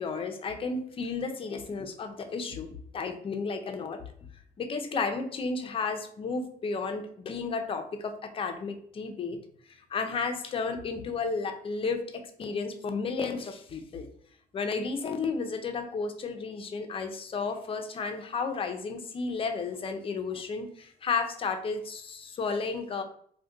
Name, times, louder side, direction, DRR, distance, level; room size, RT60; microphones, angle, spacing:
voice 1, 0.0-2.7 2.9-4.0 4.6-9.4 9.9-14.1 14.5-23.0, left 4 dB, 35° left, 6 dB, 0.5 m, -33 dB
2.5 x 2.2 x 3.6 m, 0.63 s
cardioid pair, 110°, 17 cm